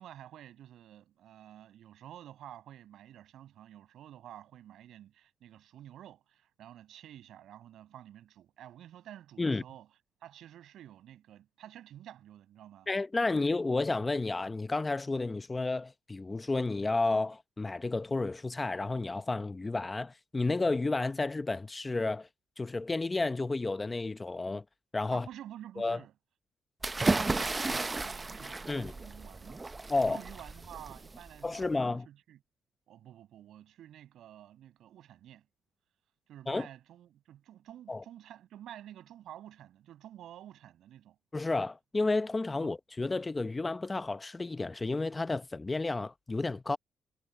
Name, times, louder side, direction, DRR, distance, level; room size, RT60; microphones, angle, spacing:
voice 1, 0.0-9.9 10.2-12.9 25.1-26.1 27.0-29.6 30.0-32.4 32.9-35.5 36.3-41.2 42.6-42.7, right 11 dB, 75° right, 7.6 m, -50 dB
voice 2, 12.9-22.3 22.6-24.6 24.9-25.3 25.8-26.0 28.7-28.9 29.9-30.2 31.4-32.1 36.5-36.7 37.9-38.0 41.3-46.8, left 3 dB, 20° left, 0.7 m, -31 dB
sound 1, 26.8-31.6, right 3 dB, 20° right, 0.7 m, -33 dB
cardioid pair, 90°, 0 cm